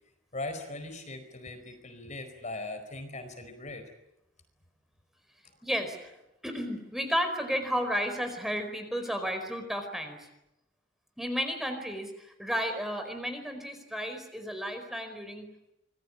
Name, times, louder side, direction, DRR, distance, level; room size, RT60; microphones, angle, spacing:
voice 1, 0.3-3.8, left 2 dB, 40° left, 8 dB, 4.7 m, -39 dB
voice 2, 5.6-6.2 6.4-10.3 11.2-15.5, equal, ahead, 6 dB, 4.7 m, -33 dB
26.5 x 21.0 x 9.9 m, 0.88 s
head